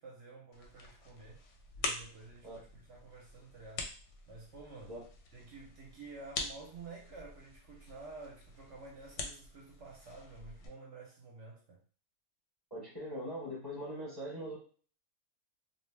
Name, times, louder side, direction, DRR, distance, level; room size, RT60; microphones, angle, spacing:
voice 1, 0.0-1.4 1.8-3.9 4.3-4.9 5.3-11.8, right 3 dB, 65° right, 0.8 m, -51 dB
sound 1, 0.5-10.7, left 3 dB, 70° left, 0.8 m, -45 dB
voice 2, 12.7-14.6, equal, 20° left, 0.6 m, -41 dB
2.6 x 2.0 x 3.1 m
omnidirectional pair, 1.5 m